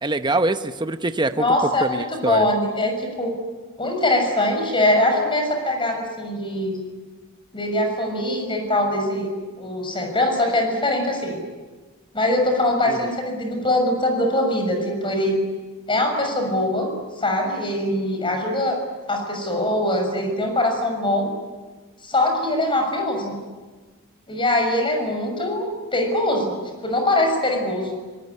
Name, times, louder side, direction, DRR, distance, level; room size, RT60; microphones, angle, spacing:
voice 1, 0.0-1.5 1.8-2.5 12.9-13.1, right 2 dB, 20° right, 9 dB, 0.8 m, -24 dB
voice 2, 1.4-3.3 3.8-6.8 7.5-9.3 9.6-11.4 12.1-15.4 15.9-16.9 17.2-18.8 19.1-21.3 22.0-23.4 24.3-25.6 25.9-26.6 26.8-27.9, left 1 dB, 25° left, 3 dB, 6.6 m, -22 dB
24.5 x 20.0 x 9.8 m, 1.3 s
head